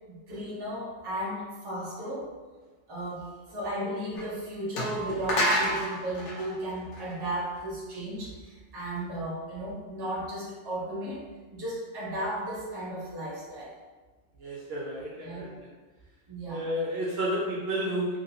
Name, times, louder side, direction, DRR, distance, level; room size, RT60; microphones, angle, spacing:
voice 1, 0.1-2.3 2.9-11.2 11.5-13.7 15.2-15.5 16.3-16.7, right 1 dB, 25° right, -7 dB, 0.7 m, -35 dB
sound 1, 4.2-4.3 4.8-7.6, equal, 75° left, 1.1 m, -29 dB
voice 2, 14.4-15.6 16.5-18.2, equal, 65° right, -5 dB, 0.8 m, -31 dB
3.0 x 2.8 x 2.7 m, 1.3 s
omnidirectional pair, 1.2 m